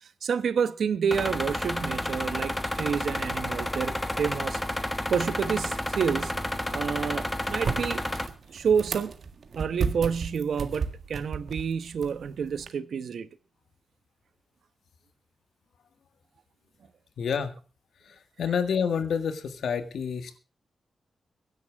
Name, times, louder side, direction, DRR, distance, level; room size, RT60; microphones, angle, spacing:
voice 1, 0.0-4.6 5.1-6.4 6.7-8.0 8.5-9.2 9.5-13.3, right 6 dB, 65° right, 1.0 m, -29 dB
sound 1, 1.1-8.3, left 1 dB, 10° left, 1.0 m, -31 dB
sound 2, 6.3-12.7, right 5 dB, 50° right, 1.7 m, -36 dB
voice 2, 17.2-17.5 18.4-20.4, left 6 dB, 85° left, 1.6 m, -28 dB
24.0 x 10.5 x 3.5 m
wide cardioid pair, 175°, 0 cm